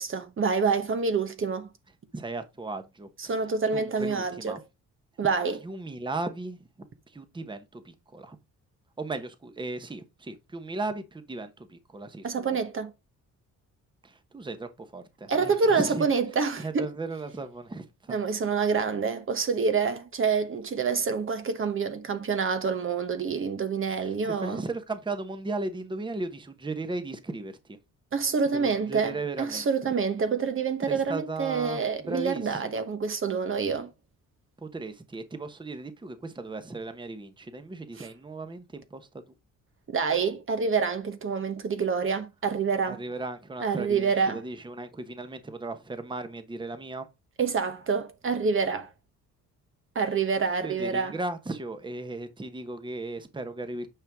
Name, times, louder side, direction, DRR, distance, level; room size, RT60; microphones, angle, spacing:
voice 1, 0.0-1.7 3.2-4.6 5.2-5.6 12.2-12.9 15.3-16.9 18.1-24.6 28.1-33.9 38.0-38.1 39.9-43.0 43.6-44.4 47.4-48.9 49.9-51.2, right 5 dB, 45° right, 1.1 m, -27 dB
voice 2, 2.1-3.4 3.7-4.6 5.6-6.6 7.1-8.4 9.0-12.6 14.0-16.1 16.6-18.2 24.0-27.8 28.5-29.7 30.9-32.8 34.6-39.1 42.9-47.1 50.6-53.9, right 2 dB, 15° right, 1.1 m, -36 dB
9.0 x 5.2 x 3.6 m
cardioid pair, 90°, 30 cm